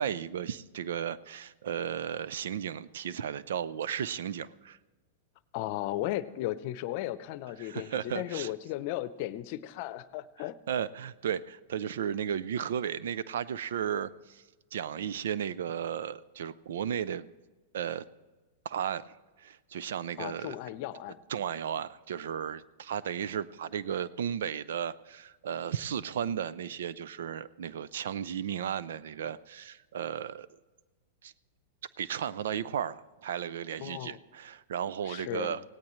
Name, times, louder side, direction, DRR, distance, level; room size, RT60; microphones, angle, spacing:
voice 1, 0.0-4.8 7.6-8.5 10.7-14.4 14.7-17.3 17.7-18.0 18.6-19.1 19.4-20.6 21.3-30.5 31.2-31.3 32.0-35.6, right 9 dB, 75° right, 17 dB, 0.5 m, -34 dB
voice 2, 5.5-10.6 20.2-21.2 33.8-34.2 35.1-35.6, left 15 dB, 55° left, 15 dB, 0.7 m, -35 dB
17.5 x 17.5 x 3.2 m, 1.2 s
hypercardioid pair, 115°, 0 cm